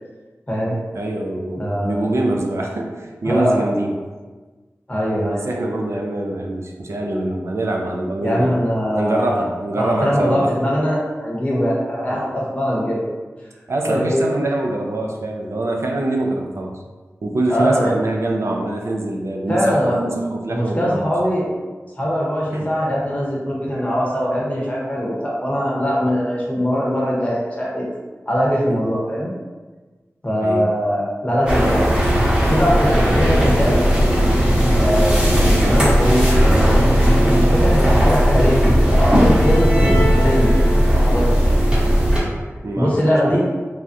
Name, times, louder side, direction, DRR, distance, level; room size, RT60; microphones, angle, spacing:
voice 1, 0.9-3.9 5.3-8.5 9.0-10.5 12.1-12.2 13.7-16.7 17.2-21.1 22.5-22.7 30.4-30.7 33.5-33.7 35.6-35.9 42.6-43.2, right 2 dB, 65° right, 1 dB, 0.4 m, -24 dB
voice 2, 1.6-2.0 3.2-3.6 4.9-5.5 8.2-9.4 9.8-13.0 13.8-14.2 17.5-17.9 19.5-20.1 20.5-21.4 22.0-27.9 28.3-29.3 30.2-31.9 32.5-34.0 34.8-36.3 37.3-41.5 42.8-43.4, equal, 25° left, -4 dB, 0.8 m, -21 dB
sound 1, 31.5-42.2, equal, 15° right, 1.0 m, -16 dB
3.3 x 2.3 x 2.6 m, 1.3 s
wide cardioid pair, 80°, 5 cm